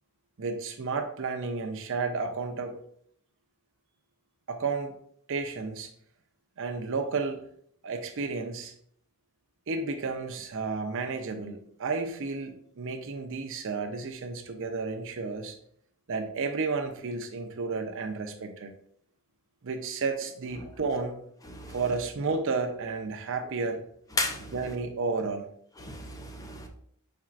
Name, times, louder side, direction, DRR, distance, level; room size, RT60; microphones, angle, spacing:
voice 1, 0.4-2.7 4.5-4.9 5.3-5.9 6.6-7.4 7.8-8.7 9.7-15.6 16.1-18.7 19.6-21.2 21.7-23.8 24.5-25.5, right 4 dB, 60° right, 6 dB, 0.6 m, -32 dB
voice 2, 24.2-24.5 25.8-26.7, left 2 dB, 15° left, 3 dB, 0.5 m, -33 dB
4.9 x 4.4 x 2.4 m, 0.65 s
head